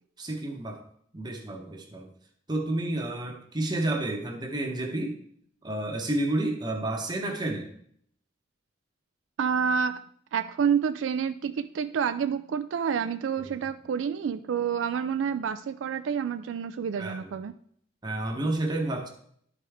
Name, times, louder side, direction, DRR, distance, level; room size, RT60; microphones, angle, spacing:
voice 1, 0.2-0.8 1.1-2.1 2.5-5.2 5.6-7.7 17.0-17.3 18.0-19.1, right 1 dB, 20° right, 1 dB, 0.9 m, -30 dB
voice 2, 9.4-10.0 10.3-17.5, right 7 dB, 80° right, 10 dB, 0.3 m, -28 dB
11.5 x 4.8 x 3.5 m, 0.65 s
head